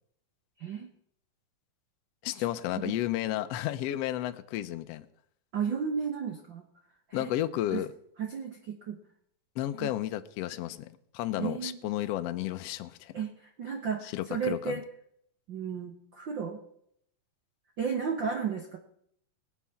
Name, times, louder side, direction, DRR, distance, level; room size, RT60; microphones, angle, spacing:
voice 1, 2.2-5.1 7.1-7.9 9.6-13.2 14.0-14.7, left 13 dB, 85° left, 10 dB, 1.4 m, -32 dB
voice 2, 5.5-6.6 7.1-7.3 7.7-7.8 8.2-9.0 9.8-9.9 11.4-11.9 13.1-13.3 13.6-14.9 15.5-16.6 17.8-18.8, right 6 dB, 80° right, 4 dB, 1.0 m, -33 dB
19.5 x 8.3 x 5.7 m, 0.71 s
omnidirectional pair, 3.7 m